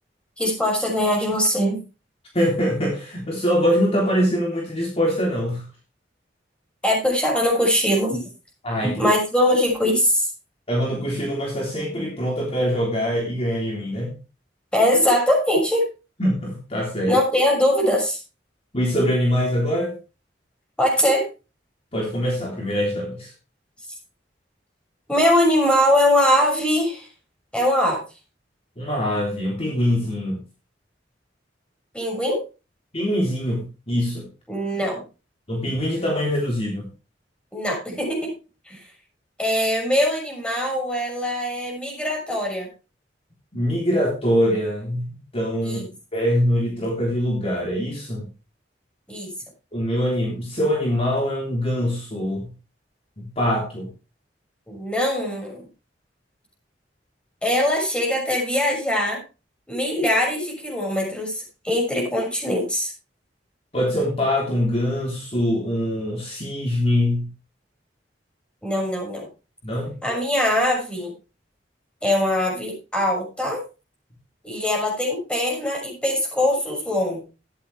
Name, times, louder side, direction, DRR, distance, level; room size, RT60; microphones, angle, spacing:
voice 1, 0.4-1.8 6.8-8.2 9.0-10.3 14.7-15.9 17.1-18.2 20.8-21.3 25.1-27.1 27.5-28.0 31.9-32.4 34.5-35.0 37.5-38.3 38.7-38.8 39.4-42.7 45.6-45.9 49.1-49.3 54.7-55.7 57.4-59.2 59.7-62.9 68.6-69.2 70.0-71.1 72.0-73.6 74.4-77.2, left 1 dB, 5° left, -1 dB, 6.4 m, -22 dB
voice 2, 2.3-5.6 8.6-8.9 10.7-14.1 16.2-17.1 18.7-19.9 21.9-23.3 28.8-30.4 32.9-34.3 35.5-36.8 43.5-45.0 45.3-45.8 46.1-48.2 49.7-52.5 53.2-53.9 63.7-67.3 69.6-69.9, equal, 35° left, -2 dB, 3.5 m, -23 dB
14.0 x 10.5 x 3.4 m, 0.31 s
head